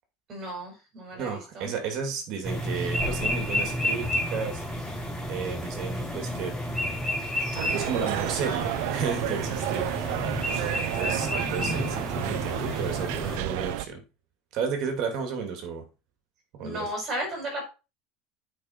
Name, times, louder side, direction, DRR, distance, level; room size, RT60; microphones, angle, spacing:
voice 1, 0.3-1.7 16.6-17.6, equal, 25° right, 2 dB, 4.9 m, -34 dB
voice 2, 1.1-4.6 5.3-6.6 7.7-10.0 10.5-14.0 14.5-15.8 16.5-16.9, right 6 dB, 45° right, 5 dB, 2.5 m, -33 dB
sound 1, 2.4-13.4, left 1 dB, 5° left, 5.0 m, -31 dB
sound 2, 7.5-13.8, right 14 dB, 65° right, 0.6 m, -31 dB
8.5 x 5.1 x 4.4 m, 0.29 s
cardioid pair, 170°, 0 cm